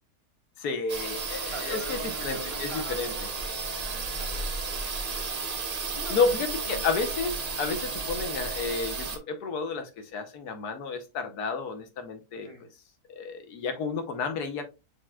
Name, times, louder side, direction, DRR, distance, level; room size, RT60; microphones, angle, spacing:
voice 1, 0.6-3.1 6.1-12.7 13.1-14.7, left 4 dB, 70° left, 1.4 m, -31 dB
sound 1, 0.9-9.2, right 4 dB, 55° right, 0.4 m, -33 dB
voice 2, 1.5-5.5 5.9-6.8 7.8-7.9 12.4-12.7, equal, 20° left, 1.2 m, -43 dB
6.6 x 3.4 x 2.2 m
omnidirectional pair, 1.7 m